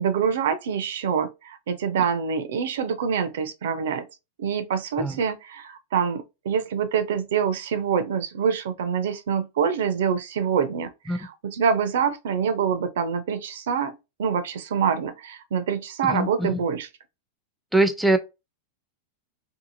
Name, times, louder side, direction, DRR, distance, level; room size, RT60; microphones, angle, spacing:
voice 1, 0.0-4.1 4.4-16.9, right 7 dB, 70° right, 0.5 m, -26 dB
voice 2, 16.1-16.6 17.7-18.2, right 2 dB, 5° right, 0.4 m, -22 dB
2.7 x 2.5 x 2.6 m
hypercardioid pair, 100°, 0 cm